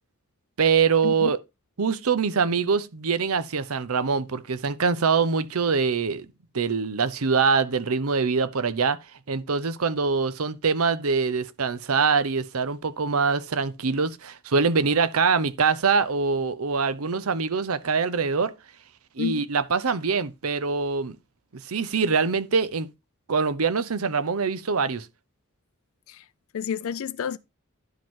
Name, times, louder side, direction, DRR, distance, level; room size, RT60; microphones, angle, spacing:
voice 1, 0.6-1.4 1.8-6.3 6.5-9.0 9.3-18.5 19.2-21.2 21.5-22.9 23.3-25.1, right 5 dB, 85° right, 0.8 m, -24 dB
voice 2, 19.2-19.5 26.1-26.2 26.5-27.4, left 6 dB, 70° left, 0.4 m, -30 dB
11.0 x 5.1 x 3.7 m
head